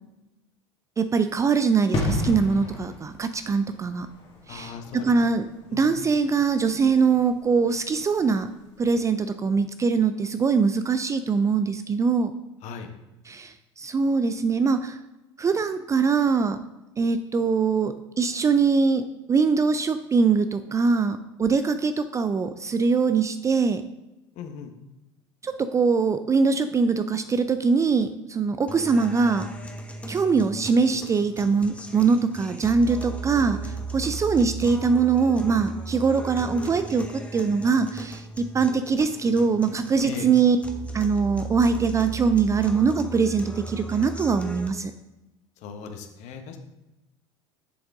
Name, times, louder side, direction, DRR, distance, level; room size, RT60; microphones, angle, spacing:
voice 1, 1.0-4.1 4.5-5.5 5.7-8.5 8.8-12.3 13.3-15.0 15.4-16.6 17.0-19.0 19.3-23.8 25.4-29.5 30.1-40.6 40.9-44.9, right 5 dB, 20° right, 10 dB, 0.4 m, -22 dB
sound 1, 1.9-8.4 8.7-8.9, left 1 dB, 35° left, 2.0 m, -33 dB
voice 2, 4.5-5.1 5.7-5.9 12.6-12.9 24.4-24.7 40.0-40.3 45.6-46.6, left 6 dB, 50° left, 6 dB, 1.2 m, -38 dB
sound 2, 28.7-44.7, right 2 dB, 10° left, 1.0 m, -36 dB
7.1 x 7.1 x 3.6 m, 1.0 s
figure-of-eight pair, 75°, 16 cm